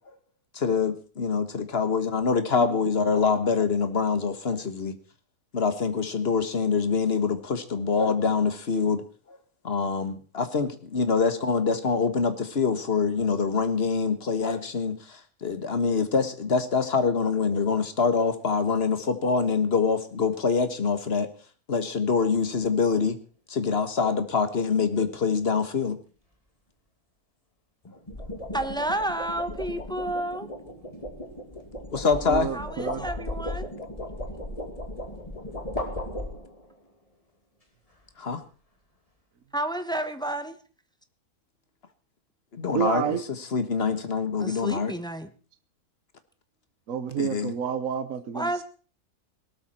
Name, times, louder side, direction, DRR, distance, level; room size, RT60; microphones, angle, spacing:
voice 1, 0.5-4.9 5.5-9.0 9.3-9.4 9.6-21.3 21.7-23.2 23.5-26.0 31.9-32.5 38.2-38.4 42.5-44.9 47.2-47.5, left 5 dB, 40° left, 10 dB, 1.6 m, -25 dB
sound 1, 22.4-22.7 27.8-36.7, left 1 dB, 20° left, 2.6 m, -36 dB
voice 2, 28.5-30.5 32.5-33.7 39.5-40.5 44.4-45.3 48.3-48.6, right 1 dB, 5° left, 9 dB, 1.0 m, -30 dB
voice 3, 32.3-33.1 42.7-43.2 46.9-48.6, right 8 dB, 60° right, 11 dB, 1.4 m, -29 dB
18.0 x 13.0 x 4.4 m, 0.38 s
omnidirectional pair, 1.6 m